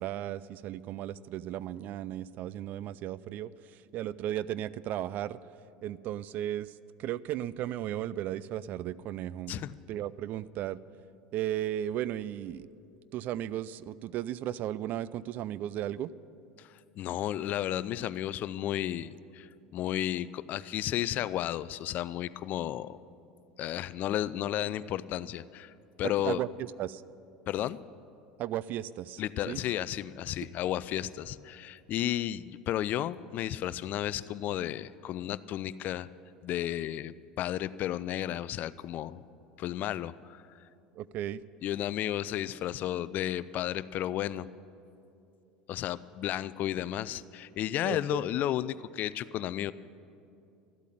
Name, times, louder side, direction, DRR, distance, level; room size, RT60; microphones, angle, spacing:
voice 1, 0.0-5.4 5.8-10.8 11.3-12.7 13.1-16.1 26.0-27.0 28.4-29.6 41.0-41.4 47.8-48.3, right 12 dB, 50° right, 19 dB, 0.4 m, -35 dB
voice 2, 17.0-19.5 19.7-23.0 23.6-25.7 26.0-26.4 27.5-27.8 29.2-36.1 36.4-39.2 39.6-40.4 41.6-44.5 45.7-49.7, left 12 dB, 50° left, 17 dB, 0.4 m, -33 dB
13.0 x 8.3 x 10.0 m, 2.6 s
hypercardioid pair, 85°, 4 cm